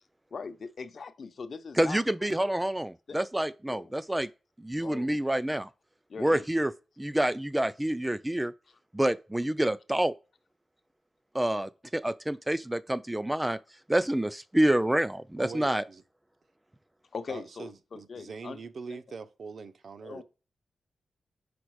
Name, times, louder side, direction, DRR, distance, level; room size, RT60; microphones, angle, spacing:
voice 1, 0.3-2.0 3.1-3.2 3.7-3.9 4.8-5.2 6.1-6.5 17.1-18.6 18.9-19.0 20.0-20.2, left 5 dB, 60° left, 0.7 m, -41 dB
voice 2, 1.8-4.3 4.6-5.7 6.2-6.7 7.0-8.5 8.9-10.1 11.3-13.6 13.9-15.8, right 1 dB, 10° right, 0.3 m, -27 dB
voice 3, 15.4-16.0 17.3-20.2, right 5 dB, 65° right, 0.7 m, -43 dB
5.1 x 4.1 x 4.7 m
wide cardioid pair, 95°, 0 cm